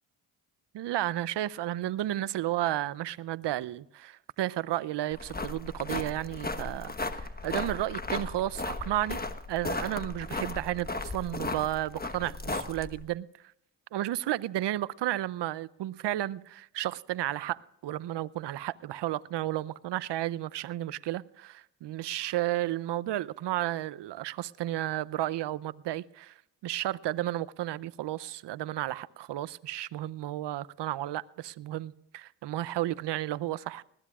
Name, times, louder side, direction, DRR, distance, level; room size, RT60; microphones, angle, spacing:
voice 1, 0.7-9.2 9.5-13.3 13.9-26.3 26.6-33.8, right 14 dB, 65° right, 0.7 m, -32 dB
sound 1, 5.1-13.0, left 3 dB, 20° left, 1.2 m, -36 dB
20.5 x 16.0 x 2.4 m
supercardioid pair, 45°, 45 cm